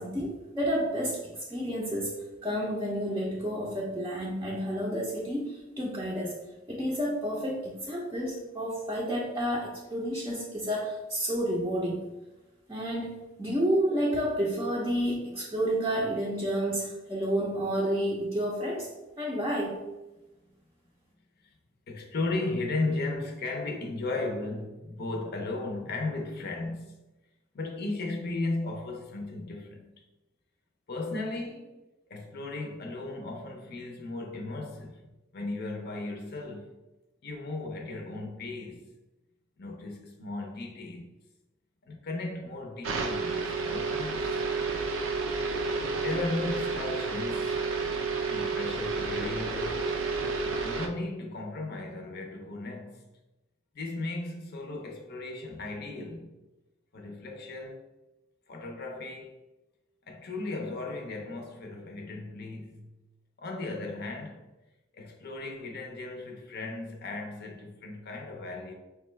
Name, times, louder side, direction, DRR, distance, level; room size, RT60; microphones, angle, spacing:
voice 1, 0.0-6.4 6.7-12.0 12.7-18.9 19.2-19.9, equal, 15° right, 0.5 m, -30 dB
voice 2, 21.9-27.0 27.5-29.9 30.9-31.8 32.1-35.0 35.3-36.7 37.2-38.9 39.6-41.1 41.8-44.4 45.9-47.6 48.3-49.8 50.6-53.0 53.7-56.4 56.9-57.9 58.5-59.4 60.1-63.0 63.4-64.5 64.9-68.7, left 2 dB, 55° left, 0.6 m, -36 dB
sound 1, 42.8-50.9, right 4 dB, 85° right, 0.5 m, -30 dB
5.0 x 2.2 x 3.1 m
head